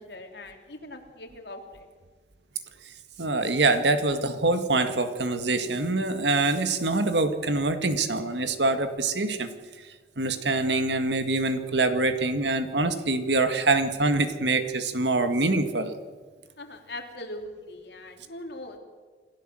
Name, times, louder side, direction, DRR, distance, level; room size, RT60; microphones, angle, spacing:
voice 1, 0.0-1.6 16.6-18.8, left 1 dB, 75° left, 3 dB, 3.5 m, -41 dB
voice 2, 3.2-9.5 10.2-16.0, right 2 dB, 85° right, 9 dB, 2.0 m, -25 dB
27.5 x 15.5 x 7.8 m, 1.4 s
head